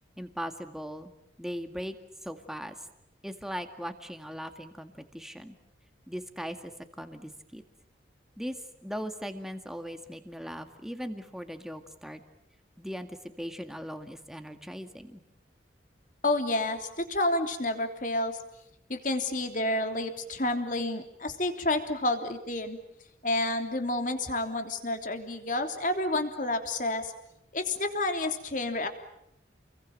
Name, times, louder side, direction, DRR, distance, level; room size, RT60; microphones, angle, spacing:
voice 1, 0.2-1.1 1.4-2.0 2.2-2.8 3.2-5.5 6.1-6.7 7.0-7.6 8.4-8.6 8.8-12.2 12.8-15.2, equal, ahead, 6 dB, 2.0 m, -39 dB
voice 2, 16.2-18.4 18.9-22.8 23.2-27.1 27.5-28.9, left 2 dB, 45° left, 6 dB, 3.3 m, -29 dB
30.0 x 22.0 x 8.9 m, 0.80 s
head